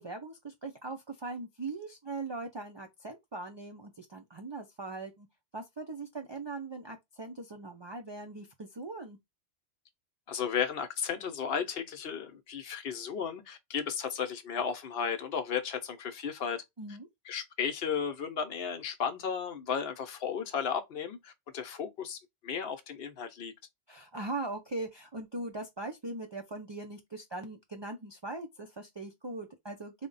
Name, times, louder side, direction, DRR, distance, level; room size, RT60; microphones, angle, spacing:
voice 1, 0.0-5.3 5.5-9.2 16.8-17.1 23.9-29.9, right 2 dB, 45° right, 0.3 m, -40 dB
voice 2, 10.3-16.6 17.3-23.5, left 7 dB, 65° left, 0.8 m, -34 dB
3.5 x 2.1 x 3.8 m
omnidirectional pair, 1.1 m